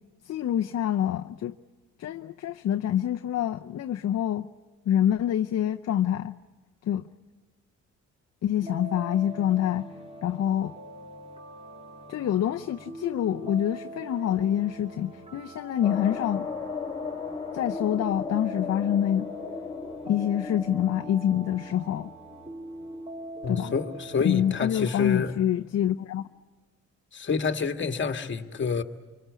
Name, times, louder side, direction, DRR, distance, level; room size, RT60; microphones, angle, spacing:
voice 1, 0.2-1.5 2.0-4.5 4.9-6.3 6.8-7.1 8.4-9.9 10.2-10.7 12.1-16.5 17.5-19.3 20.0-22.1 23.5-23.7 24.2-26.2, left 10 dB, 60° left, 0.7 m, -26 dB
sound 1, 8.6-25.2, right 1 dB, 20° right, 2.4 m, -43 dB
sound 2, 15.8-24.3 24.7-24.8 25.0-25.1, left 5 dB, 15° left, 3.8 m, -37 dB
voice 2, 23.4-25.3 27.1-28.8, left 5 dB, 40° left, 1.8 m, -28 dB
25.0 x 24.5 x 8.3 m
cardioid pair, 90°, 30 cm